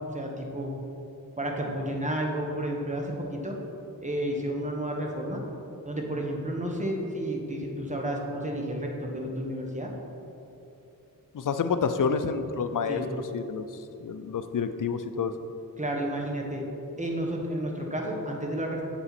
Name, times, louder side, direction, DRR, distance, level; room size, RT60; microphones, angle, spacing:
voice 1, 0.1-0.7 1.4-3.6 4.0-5.4 5.8-9.9 12.9-13.1 15.8-16.6 17.0-18.8, right 1 dB, 20° right, 0 dB, 1.4 m, -31 dB
voice 2, 11.3-13.0 13.3-13.7 14.0-15.3, left 6 dB, 65° left, 10 dB, 0.6 m, -28 dB
7.8 x 7.1 x 4.3 m, 2.9 s
wide cardioid pair, 70°, 34 cm